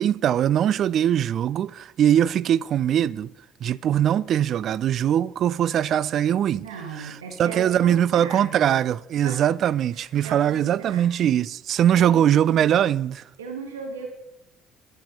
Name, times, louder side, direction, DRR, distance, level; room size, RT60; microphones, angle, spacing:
voice 1, 0.0-3.3 3.6-6.7 6.9-13.2, right 10 dB, 45° right, 0.3 m, -21 dB
voice 2, 6.3-8.8 9.2-9.4 9.9-11.1 11.9-12.6 13.4-14.1, right 5 dB, 75° right, 1.4 m, -37 dB
11.5 x 9.7 x 5.2 m
figure-of-eight pair, 55°, 0 cm